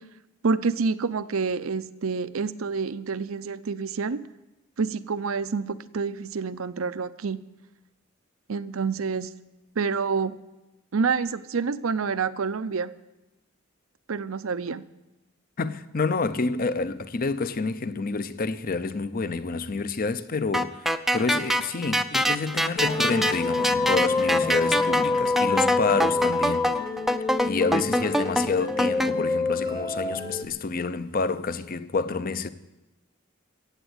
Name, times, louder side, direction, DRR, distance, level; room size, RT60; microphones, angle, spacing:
voice 1, 0.4-4.2 4.8-7.4 8.5-9.3 9.8-10.4 10.9-12.9 14.1-14.8, right 5 dB, 85° right, 0.6 m, -28 dB
voice 2, 15.6-20.9 21.1-26.7 27.4-32.5, left 4 dB, 45° left, 0.7 m, -28 dB
sound 1, 20.5-29.1, equal, ahead, 0.5 m, -25 dB
sound 2, 22.8-30.4, left 3 dB, 20° left, 1.0 m, -27 dB
16.0 x 8.1 x 8.0 m
head